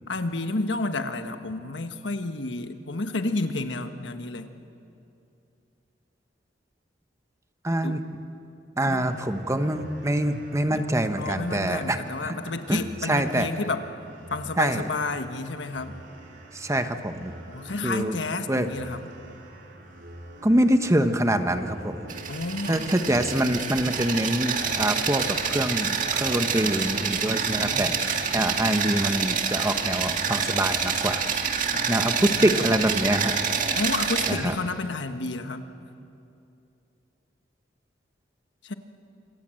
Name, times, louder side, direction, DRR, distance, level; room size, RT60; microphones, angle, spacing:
voice 1, 0.1-4.5 7.8-8.0 8.9-9.1 10.7-10.9 11.2-13.9 14.3-16.0 17.5-19.1 22.3-22.9 27.5-27.9 31.7-32.8 33.8-35.7 38.6-38.7, left 3 dB, 80° left, 8 dB, 1.3 m, -31 dB
voice 2, 7.6-8.0 8.8-12.4 12.7-13.5 14.6-14.9 16.5-17.3 17.8-18.2 18.5-18.7 20.4-22.1 22.7-31.3 31.9-33.4 34.3-34.5, right 1 dB, 15° right, 8 dB, 1.1 m, -25 dB
sound 1, 8.9-27.6, right 1 dB, 75° right, 2.9 m, -46 dB
sound 2, 22.1-34.3, right 6 dB, 45° right, 1.9 m, -27 dB
26.5 x 25.5 x 7.8 m, 2.7 s
head